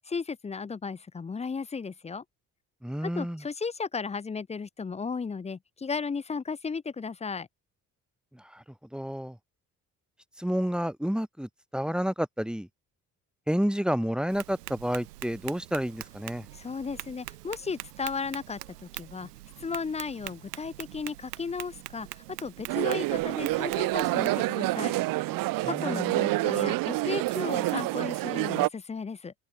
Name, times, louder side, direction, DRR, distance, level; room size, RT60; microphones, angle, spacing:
voice 1, 0.1-2.2 3.0-7.5 16.5-19.3 19.6-24.9 25.6-29.3, left 5 dB, 15° left, 0.5 m, -35 dB
voice 2, 2.8-3.4 8.3-8.6 8.9-9.4 10.4-12.7 13.5-16.4 25.6-26.2, equal, ahead, 1.3 m, -30 dB
Tap, 14.3-24.3, right 17 dB, 85° right, 0.7 m, -44 dB
sound 1, 22.7-28.7, right 19 dB, 50° right, 0.5 m, -27 dB
open air
figure-of-eight pair, 45°, 46 cm